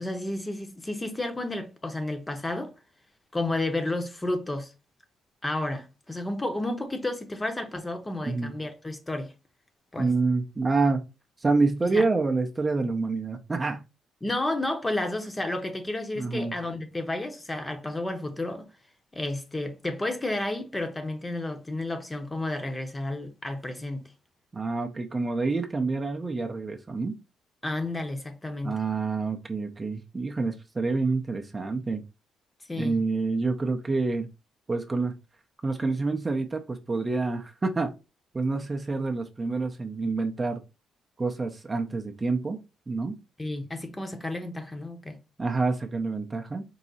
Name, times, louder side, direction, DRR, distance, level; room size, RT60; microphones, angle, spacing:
voice 1, 0.0-2.7 3.3-4.7 5.4-9.3 9.9-10.1 11.9-12.1 14.2-18.6 19.1-24.0 27.6-28.8 32.7-33.0 43.4-45.2, left 2 dB, 20° left, 0.8 m, -31 dB
voice 2, 10.0-11.0 11.4-13.8 16.2-16.5 24.5-27.1 28.6-32.0 32.8-34.3 34.7-35.1 35.6-37.9 38.3-40.6 41.2-42.6 42.9-43.1 45.4-46.6, right 3 dB, 25° right, 0.6 m, -27 dB
4.6 x 2.0 x 3.9 m
cardioid pair, 90°, 0 cm